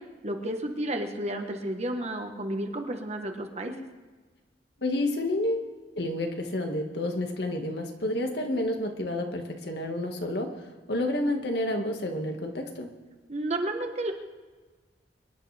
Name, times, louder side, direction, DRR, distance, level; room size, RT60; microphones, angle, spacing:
voice 1, 0.2-3.7 13.3-14.1, right 1 dB, 35° right, 4 dB, 1.3 m, -31 dB
voice 2, 4.8-10.5 10.9-12.9, left 1 dB, 65° left, 3 dB, 1.8 m, -30 dB
24.0 x 11.5 x 3.5 m, 1.3 s
head